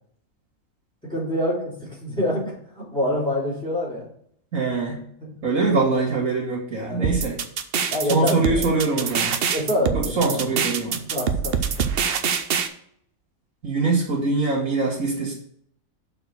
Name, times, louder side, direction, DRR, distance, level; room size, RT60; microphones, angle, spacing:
voice 1, 1.0-4.1 5.2-5.3 5.7-5.9 6.8-7.1 7.9-8.8 9.5-10.4 11.1-11.9, left 1 dB, 5° left, -4 dB, 3.5 m, -26 dB
voice 2, 4.5-5.0 5.4-7.4 8.1-9.4 9.9-11.1 13.6-15.3, right 3 dB, 80° right, -4 dB, 2.4 m, -23 dB
sound 1, 7.0-12.7, right 7 dB, 55° right, 0.8 m, -24 dB
6.2 x 4.7 x 6.5 m, 0.65 s
omnidirectional pair, 1.5 m